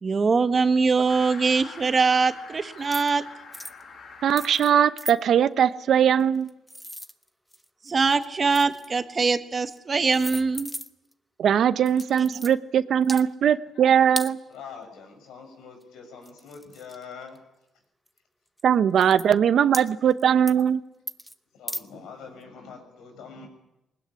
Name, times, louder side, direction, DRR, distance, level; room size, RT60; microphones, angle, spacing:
voice 1, 0.0-3.2 7.9-10.7 12.3-12.4, right 4 dB, 35° right, 8 dB, 1.6 m, -22 dB
sound 1, 1.1-4.8, left 4 dB, 60° left, 7.5 m, -44 dB
sound 2, 2.8-3.2 3.5-3.8 4.4-4.7 5.0-5.1 6.2-7.7 8.0-9.0 9.7-9.8 10.1-11.1 11.9-12.5 13.0-13.2 14.2-14.3 15.8-15.9 16.2-17.4 18.1-18.2 18.6-18.7 19.0-19.3 19.7-20.2 20.5-20.7 21.1-21.3 21.7-21.8, equal, ahead, 1.3 m, -36 dB
voice 2, 4.2-6.5 11.4-14.4 18.6-20.8, right 8 dB, 65° right, 13 dB, 1.0 m, -20 dB
voice 3, 14.5-17.4 21.5-23.5, left 5 dB, 85° left, 5 dB, 6.8 m, -44 dB
21.0 x 20.0 x 9.9 m, 0.91 s
cardioid pair, 90°, 0 cm